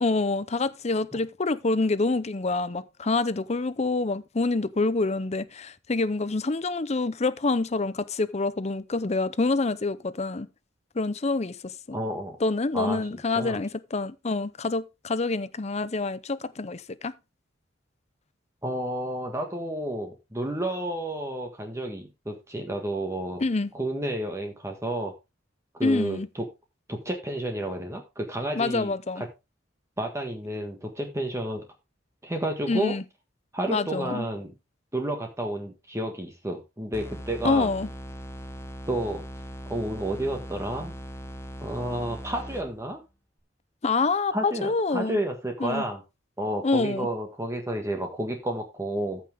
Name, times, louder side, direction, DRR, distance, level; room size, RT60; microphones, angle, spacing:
voice 1, 0.0-10.5 10.9-12.0 12.4-17.1 23.4-23.7 25.8-26.3 28.5-29.2 32.7-33.0 33.7-34.3 37.4-37.9 43.8-45.2 45.6-45.8 46.6-47.1, left 3 dB, 35° left, 0.6 m, -26 dB
voice 2, 11.9-12.4 12.7-13.0 13.3-13.6 18.6-23.4 23.7-25.1 25.8-26.2 26.9-29.3 30.0-31.6 32.2-32.9 33.5-34.5 34.9-37.7 38.9-39.2 39.7-40.9 41.6-43.0 44.3-46.0 46.4-49.2, right 1 dB, 15° right, 1.5 m, -31 dB
sound 1, 36.9-43.0, equal, 15° left, 1.0 m, -40 dB
14.0 x 6.1 x 3.5 m
head